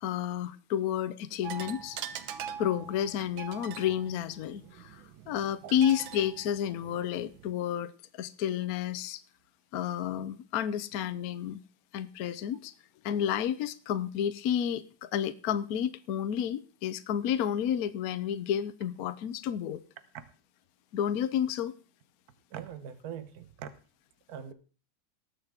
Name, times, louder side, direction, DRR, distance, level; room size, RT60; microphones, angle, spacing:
voice 1, 0.0-2.0 2.6-9.2 9.7-11.6 11.9-12.7 13.0-19.8 20.9-21.7, left 9 dB, 65° left, 0.9 m, -31 dB
sound 1, 1.4-7.5, right 8 dB, 70° right, 1.6 m, -43 dB
voice 2, 22.5-23.7 24.3-24.5, right 8 dB, 55° right, 1.4 m, -41 dB
19.5 x 7.4 x 3.5 m
omnidirectional pair, 2.3 m